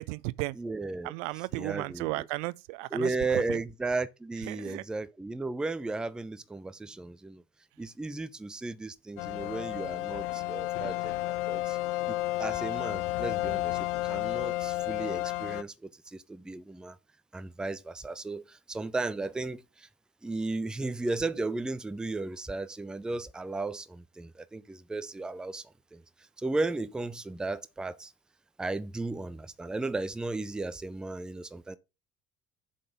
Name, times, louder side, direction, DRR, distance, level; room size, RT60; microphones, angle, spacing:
voice 1, 0.0-0.5 1.0-3.1 3.5-3.6 4.5-4.8, right 22 dB, 55° right, 0.6 m, -34 dB
voice 2, 0.5-2.3 2.9-7.4 7.8-11.8 12.1-17.0 17.3-19.9 20.2-25.6 25.9-26.0 26.4-28.1 28.6-31.8, right 3 dB, ahead, 0.4 m, -35 dB
sound 1, 9.2-15.6, left 17 dB, 55° left, 0.5 m, -32 dB
7.4 x 3.9 x 6.7 m
figure-of-eight pair, 55°, 43 cm